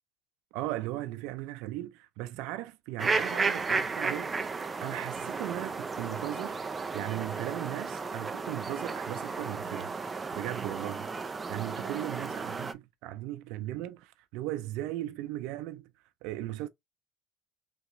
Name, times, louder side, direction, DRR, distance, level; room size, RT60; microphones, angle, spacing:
voice 1, 0.5-4.4 4.8-6.6 6.9-9.9 10.3-11.1 11.5-15.9 16.2-16.7, right 15 dB, 85° right, 0.4 m, -37 dB
sound 1, 3.0-12.7, right 4 dB, 20° right, 0.4 m, -34 dB
3.4 x 3.0 x 2.8 m
cardioid pair, 125°, 0 cm